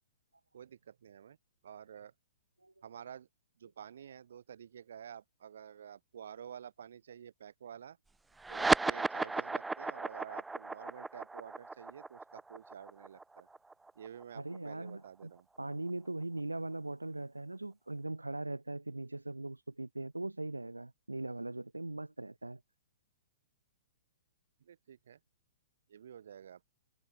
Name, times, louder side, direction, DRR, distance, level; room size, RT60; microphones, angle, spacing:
voice 1, 0.5-1.4 1.6-2.1 2.8-3.3 3.6-8.0 8.5-13.5 13.9-15.5 24.6-25.2 25.9-26.6, right 8 dB, 60° right, 4.4 m, -50 dB
sound 1, 8.4-15.2, right 3 dB, 5° right, 0.4 m, -35 dB
voice 2, 14.4-15.3 15.6-22.6, right 2 dB, 85° right, 1.2 m, -40 dB
figure-of-eight pair, 115°, 0 cm